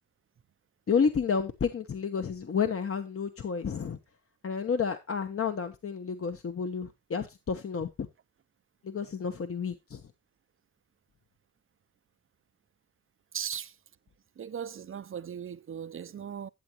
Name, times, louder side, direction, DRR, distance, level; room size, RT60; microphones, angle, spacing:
voice 1, 0.9-4.0 4.4-8.1 8.8-10.0, left 6 dB, 45° left, 0.9 m, -30 dB
voice 2, 13.3-13.7 14.4-16.5, right 8 dB, 40° right, 0.5 m, -38 dB
12.0 x 8.1 x 2.9 m
cardioid pair, 85°, 32 cm